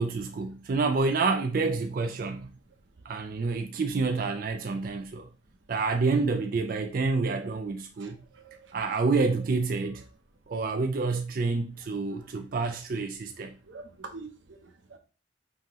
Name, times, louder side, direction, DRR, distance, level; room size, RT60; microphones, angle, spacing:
voice 1, 0.0-2.5 3.1-5.3 5.7-8.2 8.7-10.0 10.5-13.5, right 4 dB, 50° right, 0.4 m, -28 dB
voice 2, 8.0-8.7 13.7-15.0, right 3 dB, 90° right, 0.8 m, -46 dB
5.5 x 2.8 x 3.0 m
head